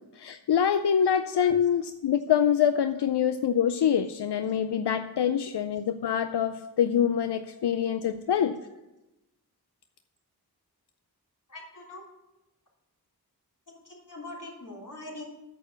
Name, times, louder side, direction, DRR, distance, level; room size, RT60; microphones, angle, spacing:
voice 1, 0.2-8.6, left 8 dB, 90° left, 9 dB, 0.5 m, -25 dB
voice 2, 11.5-12.0 13.8-15.2, left 2 dB, 50° left, -3 dB, 3.4 m, -42 dB
9.1 x 7.0 x 6.8 m, 0.98 s
wide cardioid pair, 55°, 39 cm